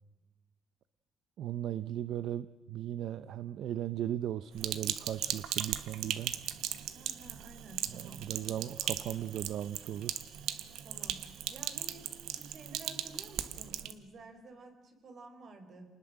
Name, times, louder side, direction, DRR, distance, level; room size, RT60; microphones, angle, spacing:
voice 1, 1.4-6.3 7.9-10.2, right 11 dB, 70° right, 14 dB, 0.7 m, -37 dB
Sink (filling or washing), 4.6-13.9, right 11 dB, 90° right, 1.4 m, -38 dB
voice 2, 6.9-8.3 10.8-15.9, right 3 dB, 45° right, 7 dB, 4.7 m, -52 dB
29.0 x 20.0 x 7.7 m, 1.3 s
cardioid pair, 130°, 0 cm